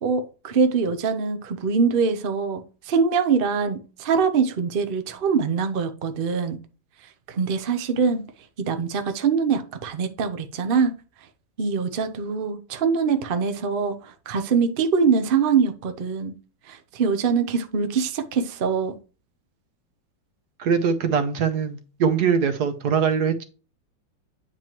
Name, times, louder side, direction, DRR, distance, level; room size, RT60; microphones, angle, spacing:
voice 1, 0.0-6.6 7.3-8.2 8.6-10.9 11.6-16.3 16.7-19.0, right 5 dB, 85° right, 8 dB, 0.4 m, -23 dB
voice 2, 20.6-23.4, right 6 dB, 65° right, 8 dB, 1.1 m, -22 dB
9.0 x 4.4 x 3.0 m, 0.35 s
omnidirectional pair, 2.1 m